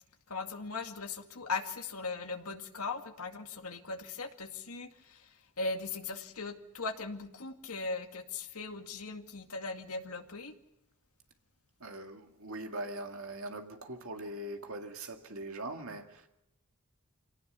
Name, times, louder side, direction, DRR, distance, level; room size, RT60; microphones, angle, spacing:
voice 1, 0.3-10.5, left 3 dB, 80° left, 2.2 m, -39 dB
voice 2, 11.8-16.3, right 1 dB, 70° right, 2.1 m, -41 dB
26.0 x 18.0 x 6.9 m
head